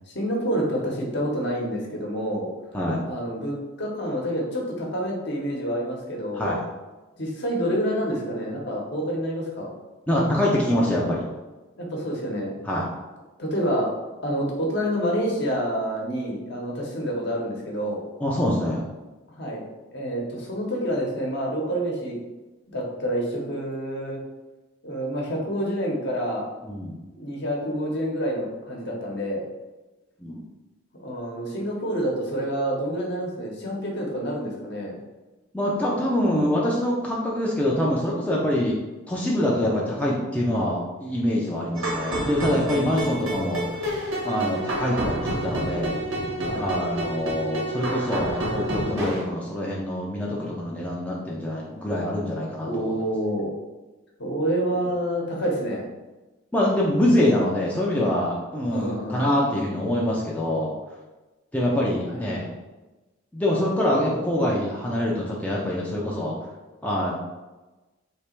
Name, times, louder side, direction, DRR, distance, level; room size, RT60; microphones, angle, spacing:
voice 1, 0.1-2.5 3.1-6.5 7.2-9.7 11.8-12.5 13.4-13.9 14.2-18.0 19.4-19.6 19.9-22.2 22.7-24.2 24.8-26.5 27.1-29.4 31.0-34.9 46.4-46.7 52.6-53.5 54.2-55.8 58.7-59.3 62.1-62.4, equal, 55° left, -2 dB, 1.0 m, -28 dB
voice 2, 10.1-11.2 12.6-12.9 18.2-18.8 26.6-27.0 30.2-30.4 35.5-38.8 39.1-43.6 44.2-46.0 46.5-52.9 56.5-60.7 61.5-62.5 63.3-66.3 66.8-67.1, left 1 dB, 5° left, -5 dB, 0.4 m, -25 dB
sound 1, 41.8-49.2, right 1 dB, 90° right, 1.3 m, -29 dB
3.3 x 2.9 x 4.4 m, 1.1 s
head